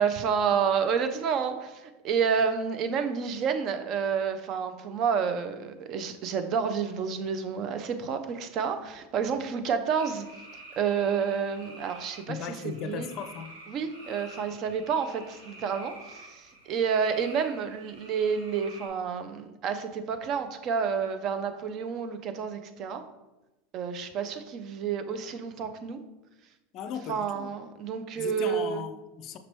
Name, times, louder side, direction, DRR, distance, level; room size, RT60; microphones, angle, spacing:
voice 1, 0.0-10.3 10.8-12.4 12.6-13.1 13.7-23.0 23.7-26.0 27.1-28.8, right 6 dB, 45° right, 0.4 m, -29 dB
sound 1, 9.9-18.9, right 1 dB, 85° right, 1.0 m, -49 dB
voice 2, 12.3-13.6 26.7-27.5 28.2-29.4, left 7 dB, 45° left, 0.4 m, -37 dB
5.9 x 2.9 x 3.0 m
hypercardioid pair, 85°, 0 cm